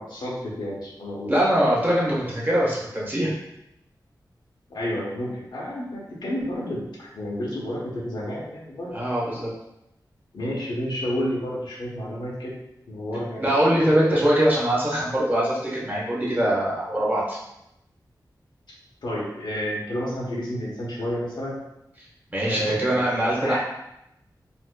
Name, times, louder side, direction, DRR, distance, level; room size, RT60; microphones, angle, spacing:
voice 1, 0.0-1.3 4.7-8.9 10.3-12.5 12.9-13.6 19.0-21.6 22.4-23.6, equal, 90° left, -5 dB, 1.0 m, -30 dB
voice 2, 1.3-3.3 8.9-9.5 13.4-17.4 22.3-23.6, equal, 25° right, -6 dB, 1.1 m, -22 dB
4.2 x 2.7 x 2.2 m, 0.85 s
wide cardioid pair, 115°, 7 cm